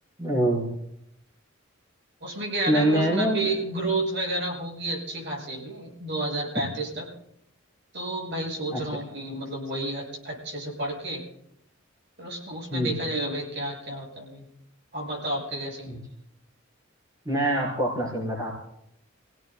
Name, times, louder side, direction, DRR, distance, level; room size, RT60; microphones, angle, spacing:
voice 1, 0.2-0.7 2.7-3.5 8.7-9.0 12.7-12.9 15.9-16.0 17.3-18.5, right 1 dB, 15° right, -4 dB, 4.3 m, -25 dB
voice 2, 2.2-7.1 7.9-11.2 12.2-14.5 14.9-16.0, right 2 dB, 60° right, -1 dB, 6.6 m, -31 dB
29.0 x 17.0 x 2.3 m, 0.75 s
head